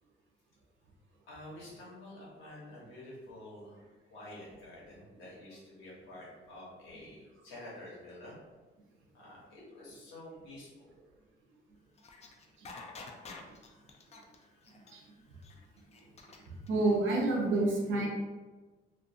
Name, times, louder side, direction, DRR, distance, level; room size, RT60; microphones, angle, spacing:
voice 1, 1.3-3.8 4.1-8.4 9.1-10.9, left 1 dB, 80° left, -5 dB, 1.1 m, -49 dB
sound 1, 12.0-16.7, left 3 dB, 35° left, 0.4 m, -49 dB
voice 2, 16.7-18.1, right 2 dB, 80° right, -2 dB, 0.7 m, -28 dB
2.5 x 2.4 x 2.7 m, 1.3 s
cardioid pair, 90°, 20 cm